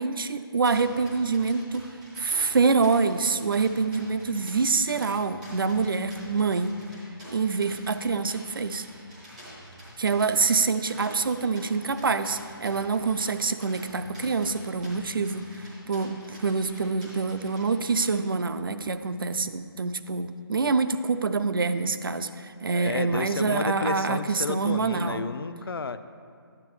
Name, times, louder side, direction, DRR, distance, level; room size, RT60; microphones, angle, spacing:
voice 1, 0.0-1.8 2.2-6.7 7.3-8.9 10.0-25.2, right 4 dB, 60° right, 11 dB, 0.4 m, -26 dB
sound 1, 0.6-18.1, equal, 5° right, 0.6 m, -47 dB
voice 2, 22.7-26.0, left 4 dB, 70° left, 12 dB, 0.4 m, -31 dB
9.8 x 8.1 x 3.1 m, 2.2 s
hypercardioid pair, 175°, 13 cm